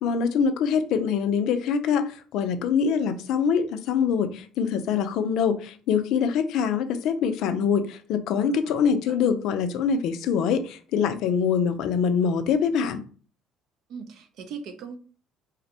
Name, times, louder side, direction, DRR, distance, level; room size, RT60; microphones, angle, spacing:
voice 1, 0.0-13.0, left 6 dB, 70° left, 0.4 m, -24 dB
voice 2, 8.6-9.2 13.9-15.0, right 6 dB, 65° right, 0.4 m, -39 dB
2.5 x 2.0 x 2.8 m
supercardioid pair, 85°, 0 cm